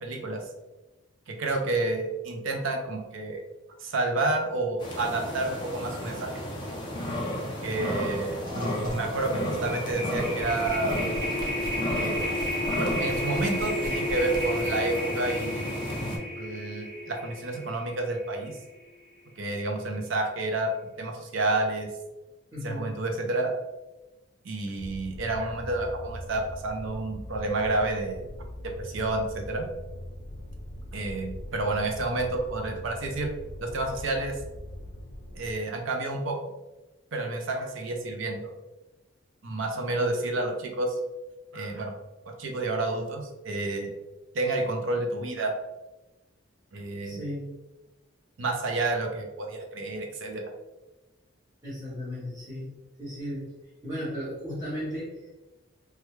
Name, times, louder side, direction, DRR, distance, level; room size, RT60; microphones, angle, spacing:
voice 1, 0.0-0.4 1.3-3.4 3.8-6.3 7.6-8.4 8.9-11.0 12.0-12.2 12.8-15.9 16.4-18.6 19.4-20.7 21.0-21.9 22.6-23.5 24.4-28.2 28.6-29.7 30.9-33.3 33.6-34.4 35.3-36.5 37.1-38.5 39.4-41.0 41.5-41.9 42.4-43.9 44.3-45.5 46.7-47.2 48.4-50.5, right 2 dB, 70° right, 3 dB, 0.5 m, -30 dB
sound 1, 4.8-16.2, left 1 dB, 25° left, 0.5 m, -33 dB
sound 2, 7.9-8.1 8.4-18.6, left 1 dB, 50° right, 1.1 m, -32 dB
voice 2, 22.5-23.0 47.0-47.6 51.6-53.5 53.8-55.3, equal, 15° right, -10 dB, 0.8 m, -36 dB
sound 3, 24.8-35.5, equal, 80° left, 0.5 m, -41 dB
3.2 x 2.3 x 3.1 m, 1.1 s
head